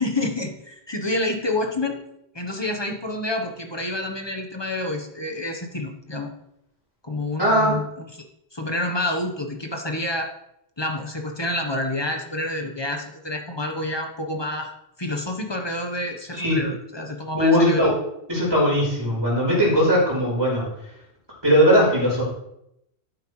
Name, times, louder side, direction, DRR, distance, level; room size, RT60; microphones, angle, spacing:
voice 1, 0.0-2.0 2.3-6.3 7.0-8.2 8.5-10.3 10.8-14.7 15.0-17.9, left 1 dB, 25° left, 3 dB, 1.2 m, -28 dB
voice 2, 7.4-7.8 16.4-16.6 17.4-17.9 18.3-20.6 21.4-22.2, equal, 20° right, -5 dB, 4.6 m, -19 dB
12.0 x 9.3 x 3.3 m, 0.79 s
omnidirectional pair, 1.1 m